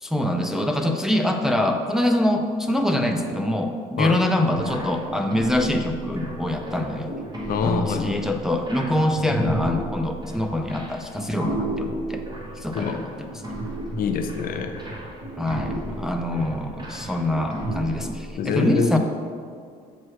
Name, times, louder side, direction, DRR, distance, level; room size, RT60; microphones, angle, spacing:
voice 1, 0.0-7.1 7.6-12.2 12.6-13.1 15.4-19.0, left 1 dB, 5° right, 3 dB, 0.4 m, -24 dB
sound 1, 4.5-18.3, right 1 dB, 25° right, 1.2 m, -33 dB
voice 2, 7.5-8.2 12.7-13.0 14.0-14.8 18.4-19.0, left 6 dB, 60° left, 6 dB, 0.5 m, -25 dB
7.4 x 3.1 x 4.6 m, 2.2 s
cardioid pair, 110°, 17 cm